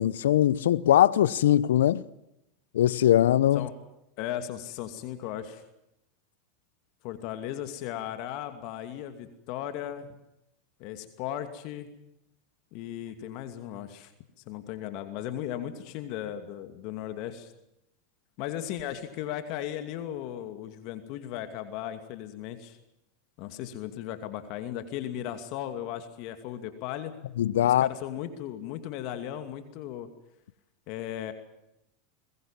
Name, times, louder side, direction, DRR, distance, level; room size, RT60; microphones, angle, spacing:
voice 1, 0.0-2.0 2.7-3.7 27.4-27.9, left 12 dB, 80° left, 0.8 m, -21 dB
voice 2, 4.2-5.6 7.0-10.1 10.8-11.9 12.7-14.1 14.5-17.5 18.4-22.8 23.4-27.1 27.6-30.1 30.9-31.3, left 11 dB, 60° left, 2.5 m, -36 dB
22.0 x 21.0 x 7.5 m
hypercardioid pair, 100°, 0 cm